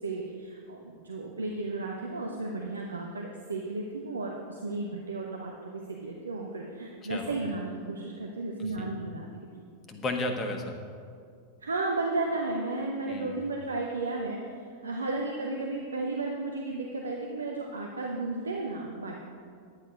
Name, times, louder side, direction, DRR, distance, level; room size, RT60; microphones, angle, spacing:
voice 1, 0.0-9.3 11.6-19.2, right 2 dB, 75° right, 0 dB, 0.9 m, -34 dB
voice 2, 9.9-10.8 13.1-13.4, left 2 dB, 25° left, 4 dB, 1.3 m, -33 dB
10.5 x 8.7 x 5.1 m, 2.3 s
figure-of-eight pair, 90°, 0 cm